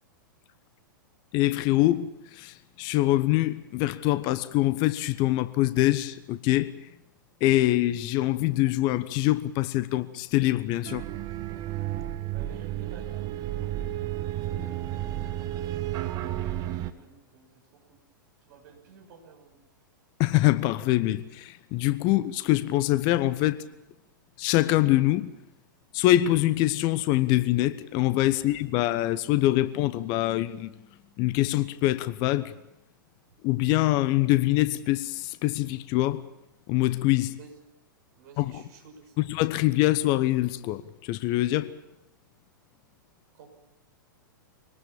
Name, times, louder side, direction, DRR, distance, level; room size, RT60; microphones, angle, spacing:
voice 1, 1.3-6.7 7.4-11.1 20.2-23.7 24.4-25.3 25.9-30.7 31.2-32.5 33.4-36.3 36.7-37.3 38.4-38.6 39.2-41.7, left 16 dB, 40° left, 1.0 m, -24 dB
sound 1, 10.8-16.9, right 13 dB, 35° right, 1.5 m, -32 dB
voice 2, 12.3-13.8 14.5-15.0 15.3-16.7 16.9-17.5 17.9-18.0 18.5-19.6 28.4-28.5 37.4-37.5 38.1-39.3 43.4-43.5, right 5 dB, 50° right, 6.2 m, -52 dB
24.5 x 19.0 x 7.1 m
figure-of-eight pair, 105°, 11 cm